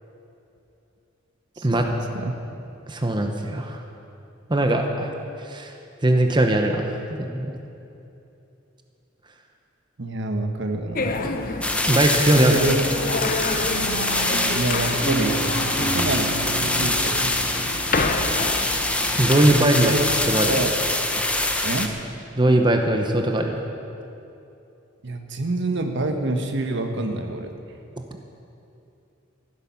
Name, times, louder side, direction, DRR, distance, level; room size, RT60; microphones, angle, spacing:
voice 1, 1.6-2.4 10.0-11.3 12.3-12.9 14.5-16.3 16.6-17.3 19.8-20.1 20.4-20.7 21.6-21.9 25.0-27.5, right 2 dB, 65° right, 5 dB, 1.2 m, -27 dB
voice 2, 2.9-3.8 4.5-5.1 5.5-5.7 6.0-7.6 11.9-12.6 19.2-19.9 20.3-20.6 22.4-23.6, right 1 dB, 25° right, 4 dB, 0.9 m, -20 dB
sound 1, 10.9-20.6, left 3 dB, 45° left, 0.8 m, -29 dB
sound 2, 11.6-21.9, left 2 dB, 5° left, 0.8 m, -24 dB
sound 3, 13.6-18.7, right 3 dB, 30° left, 3.0 m, -33 dB
14.5 x 12.0 x 5.7 m, 2.8 s
head